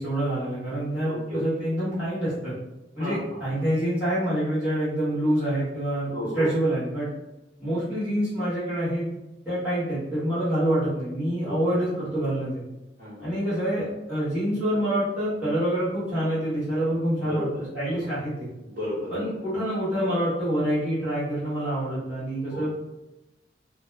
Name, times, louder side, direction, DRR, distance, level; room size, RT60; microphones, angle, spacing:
voice 1, 0.0-2.5 2.9-7.1 7.6-9.1 9.4-12.6 13.2-17.4 17.7-18.5 19.1-22.7, right 1 dB, 5° right, -13 dB, 1.1 m, -26 dB
voice 2, 1.0-1.5 3.0-3.6 6.1-6.5 11.4-11.6 13.0-13.3 17.3-17.6 18.0-18.1 18.6-19.3 22.4-22.7, left 1 dB, 55° right, -9 dB, 0.9 m, -33 dB
2.1 x 2.0 x 3.3 m, 0.98 s
head